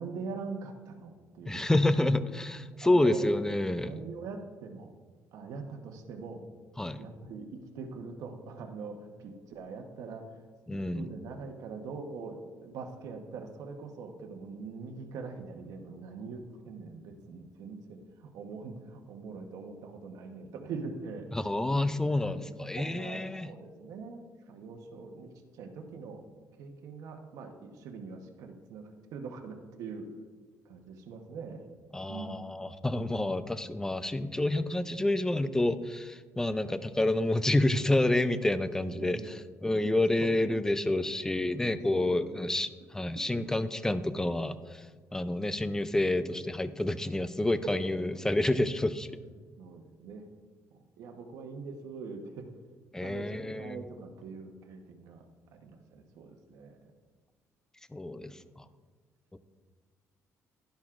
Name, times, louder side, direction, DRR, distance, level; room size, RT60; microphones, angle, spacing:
voice 1, 0.0-1.7 2.0-2.1 2.8-3.2 3.8-4.9 5.3-6.4 7.0-10.3 10.7-21.3 22.2-26.2 26.6-30.1 30.6-31.7 32.1-32.4 36.6-36.8 38.9-39.9 40.2-40.3 41.4-41.6 41.9-42.4 43.3-43.5 49.6-50.3 50.7-52.5 53.0-56.9, right 4 dB, 85° right, 4 dB, 1.0 m, -43 dB
voice 2, 1.5-3.9 6.8-7.0 10.7-11.1 21.3-23.5 31.9-44.9 45.1-49.1 52.9-53.8 57.9-58.6 59.3-59.4, left 1 dB, 10° left, 12 dB, 0.4 m, -29 dB
11.5 x 10.5 x 2.5 m, 1.4 s
cardioid pair, 115°, 6 cm